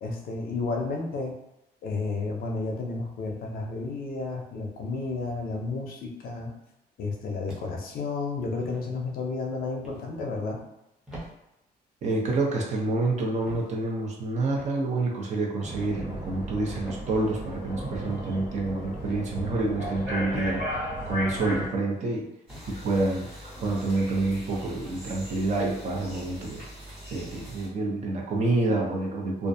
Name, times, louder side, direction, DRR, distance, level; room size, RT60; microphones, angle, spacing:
voice 1, 0.0-1.4 1.8-6.5 7.0-10.6 19.8-19.9, left 3 dB, 60° left, 1 dB, 0.5 m, -32 dB
sound 1, 7.5-7.9 8.6-8.9 9.8-10.1 11.1-11.3 12.3-12.5 13.5-13.7 14.6-14.8 15.6-15.9 16.8-17.1 18.0-18.2 19.1-19.3 20.3-20.6 21.4-21.6 22.5-22.8 23.6-23.8, equal, 5° right, 0.7 m, -43 dB
voice 2, 12.0-20.6 21.1-22.3 22.7-23.3 23.6-26.6 27.1-29.5, right 2 dB, 45° right, -1 dB, 0.5 m, -28 dB
sound 2, 15.6-21.7, equal, 65° right, 1.3 m, -34 dB
sound 3, 22.5-27.7, equal, 85° right, 1.4 m, -43 dB
2.3 x 2.1 x 2.6 m, 0.89 s
cardioid pair, 175°, 17 cm